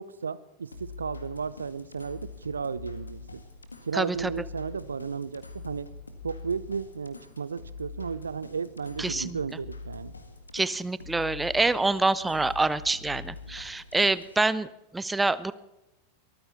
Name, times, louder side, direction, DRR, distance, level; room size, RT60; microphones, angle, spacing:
voice 1, 0.0-3.4 3.9-5.9 6.2-10.1, right 5 dB, 75° right, 18 dB, 0.6 m, -34 dB
sound 1, 0.7-14.4, left 4 dB, 80° left, 1.8 m, -44 dB
voice 2, 3.9-4.3 9.0-9.4 10.5-15.5, right 2 dB, 10° right, 17 dB, 0.7 m, -26 dB
23.0 x 14.5 x 4.1 m, 0.94 s
figure-of-eight pair, 85°, 0 cm